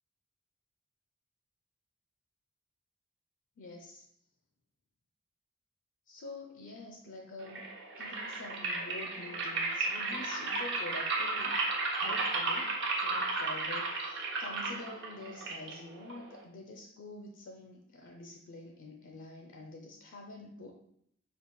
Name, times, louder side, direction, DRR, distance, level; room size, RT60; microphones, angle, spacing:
voice 1, 3.6-4.0 6.1-7.6 8.0-11.6 12.0-20.7, left 2 dB, 65° left, 2 dB, 0.4 m, -47 dB
sound 1, 7.4-16.4, right 3 dB, 60° right, 0.8 m, -34 dB
5.2 x 2.4 x 3.0 m, 0.72 s
head